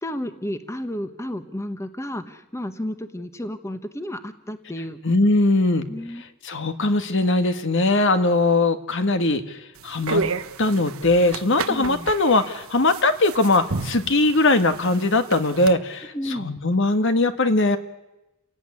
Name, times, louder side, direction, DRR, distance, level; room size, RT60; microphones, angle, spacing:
voice 1, 0.0-5.0 5.9-6.2 11.7-12.1 16.1-16.6, left 1 dB, 15° left, 9 dB, 1.2 m, -32 dB
voice 2, 5.0-5.9 6.4-9.6 9.8-10.2 10.6-17.8, left 2 dB, 60° left, 9 dB, 1.7 m, -20 dB
sound 1, 9.8-15.7, right 3 dB, 85° right, 1.1 m, -32 dB
29.0 x 18.0 x 9.8 m, 0.98 s
head